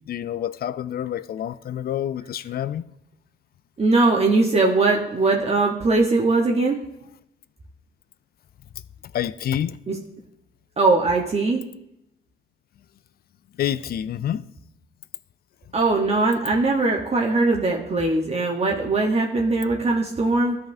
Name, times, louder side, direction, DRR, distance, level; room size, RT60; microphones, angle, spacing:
voice 1, 0.1-2.8 9.1-9.8 13.6-14.4, left 10 dB, 50° left, 0.4 m, -27 dB
voice 2, 3.8-6.8 9.9-10.0 10.8-11.6 15.7-20.6, right 3 dB, 30° right, 0.9 m, -20 dB
13.0 x 5.6 x 2.6 m
cardioid pair, 90°, 20 cm